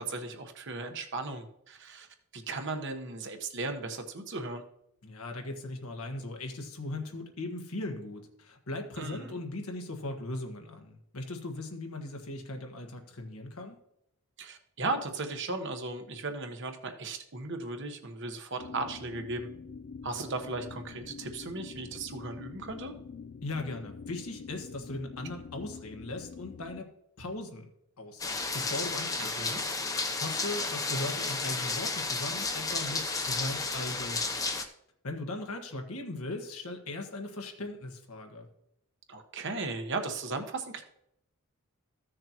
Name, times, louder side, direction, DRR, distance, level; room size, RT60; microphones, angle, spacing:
voice 1, 0.0-2.1 2.3-4.6 9.0-9.3 14.4-19.5 20.0-22.9 29.2-29.6 39.1-40.8, right 3 dB, 55° right, 6 dB, 1.1 m, -36 dB
voice 2, 5.0-13.8 23.4-26.9 27.2-27.7 28.0-29.5 30.2-34.2 35.0-38.5, left 2 dB, 90° left, 4 dB, 1.5 m, -38 dB
sound 1, 18.6-26.8, left 5 dB, 50° left, 0.3 m, -46 dB
sound 2, 28.2-34.7, left 3 dB, 15° left, 0.7 m, -32 dB
14.5 x 6.5 x 2.9 m, 0.77 s
head